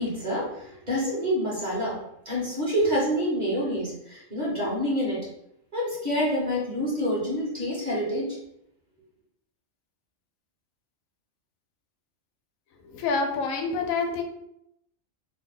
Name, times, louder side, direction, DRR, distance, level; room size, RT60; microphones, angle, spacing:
voice 1, 0.0-5.2 5.7-8.3, equal, 35° right, -6 dB, 1.1 m, -27 dB
voice 2, 12.8-14.2, left 4 dB, 90° left, 4 dB, 1.0 m, -27 dB
2.9 x 2.2 x 3.7 m, 0.78 s
omnidirectional pair, 1.4 m